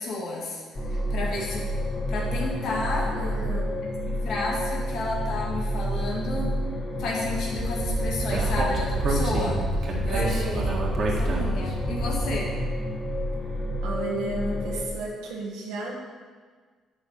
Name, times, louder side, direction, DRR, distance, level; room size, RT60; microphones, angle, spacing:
voice 1, 0.0-1.7 2.1-3.1 4.1-6.5 7.0-10.7 11.0-12.5, left 2 dB, 65° left, -4 dB, 2.3 m, -32 dB
sound 1, 0.7-14.8, equal, 35° left, 1.5 m, -29 dB
voice 2, 3.1-3.7 10.2-10.6 13.8-15.9, right 2 dB, 85° right, -3 dB, 1.7 m, -33 dB
Speech, 7.6-12.5, right 2 dB, 55° right, 1.8 m, -28 dB
9.8 x 4.2 x 7.2 m, 1.5 s
supercardioid pair, 70°, 0 cm